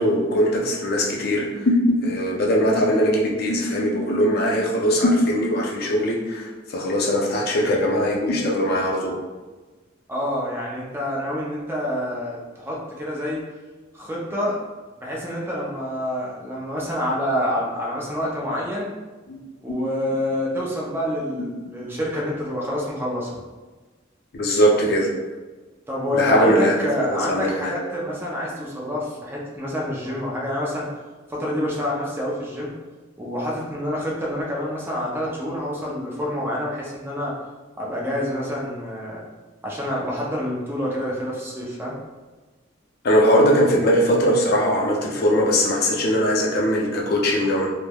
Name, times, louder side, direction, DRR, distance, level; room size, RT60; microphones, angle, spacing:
voice 1, 0.0-9.2 19.3-19.4 19.7-19.9 24.3-25.1 26.1-27.7 43.0-47.7, equal, 55° left, -1 dB, 0.5 m, -20 dB
voice 2, 10.1-13.4 13.9-14.6 15.0-18.9 19.6-23.4 25.9-30.9 31.3-32.8 33.2-37.3 37.8-39.2 39.6-42.0, left 1 dB, 10° right, -5 dB, 0.4 m, -27 dB
3.2 x 2.1 x 2.2 m, 1.3 s
head